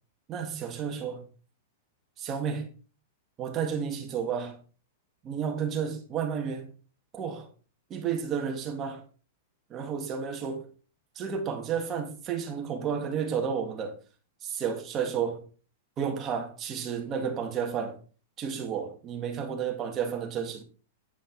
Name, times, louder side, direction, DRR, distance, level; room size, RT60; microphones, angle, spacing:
voice 1, 0.3-1.3 2.2-2.7 3.4-4.6 5.2-6.7 7.1-7.5 7.9-9.1 9.7-10.7 11.1-14.0 14.4-15.4 16.0-18.0 18.4-20.6, right 7 dB, 25° right, 1.6 m, -31 dB
8.9 x 5.2 x 3.8 m
supercardioid pair, 150°, 0 cm